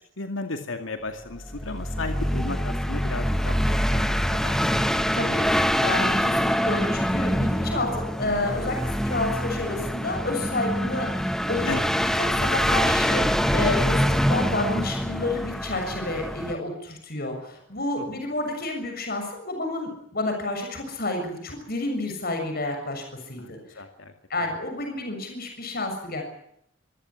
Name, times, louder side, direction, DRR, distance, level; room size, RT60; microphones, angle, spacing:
voice 1, 0.2-4.8 11.7-11.9 18.0-18.1 23.4-24.1 24.4-24.5, left 3 dB, 75° left, 6 dB, 2.3 m, -35 dB
sound 1, 1.3-16.5, equal, ahead, 1.0 m, -25 dB
voice 2, 5.8-8.8 9.0-11.7 12.0-23.6 24.3-26.2, left 2 dB, 50° left, 4 dB, 6.8 m, -30 dB
25.5 x 16.0 x 9.8 m, 0.73 s
head